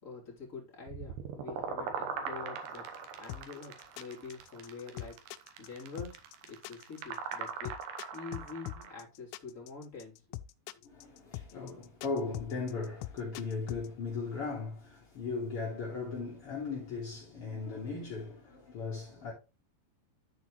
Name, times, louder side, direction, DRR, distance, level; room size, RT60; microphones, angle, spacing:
voice 1, 0.0-2.8 3.2-5.2 5.6-7.7 8.1-10.1, left 4 dB, 20° left, 2.6 m, -45 dB
sound 1, 0.9-9.0, right 6 dB, 70° right, 2.7 m, -40 dB
sound 2, 3.3-13.9, left 14 dB, 85° left, 2.9 m, -43 dB
voice 2, 10.8-19.3, left 4 dB, 55° left, 1.7 m, -37 dB
13.0 x 4.4 x 3.1 m
omnidirectional pair, 5.2 m